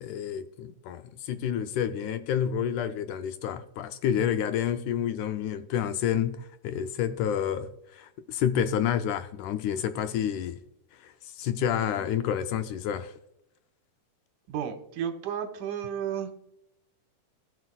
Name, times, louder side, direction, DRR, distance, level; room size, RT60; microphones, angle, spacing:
voice 1, 0.0-10.6 10.9-13.1, left 9 dB, 80° left, 1.9 m, -29 dB
voice 2, 14.5-16.4, right 8 dB, 80° right, 2.4 m, -33 dB
17.5 x 6.4 x 2.2 m
omnidirectional pair, 3.7 m